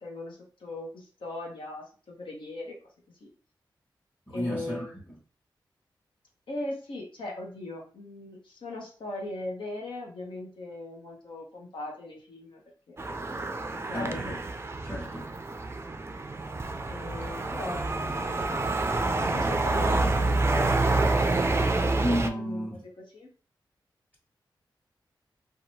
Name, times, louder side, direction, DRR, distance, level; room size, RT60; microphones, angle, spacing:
voice 1, 0.0-2.8 3.2-3.3 4.3-4.9 6.5-12.6 12.9-13.1 13.9-14.4 16.9-18.6 19.2-23.3, left 2 dB, 75° left, 0.9 m, -39 dB
voice 2, 4.3-4.8 13.9-14.4 14.8-15.3 22.0-22.8, equal, 20° left, 1.2 m, -31 dB
sound 1, 13.0-22.3, right 2 dB, 30° right, 0.4 m, -27 dB
2.8 x 2.3 x 2.7 m
cardioid pair, 50°, 9 cm